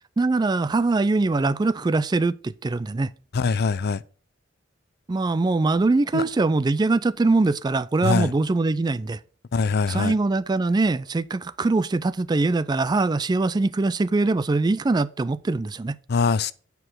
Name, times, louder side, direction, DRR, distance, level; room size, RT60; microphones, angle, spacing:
voice 1, 0.2-3.1 5.1-9.2 9.9-16.0, right 3 dB, 20° right, 0.3 m, -22 dB
voice 2, 3.3-4.0 6.1-6.2 8.0-8.3 9.5-10.1 16.1-16.5, left 4 dB, 55° left, 0.5 m, -22 dB
8.7 x 4.7 x 5.8 m
head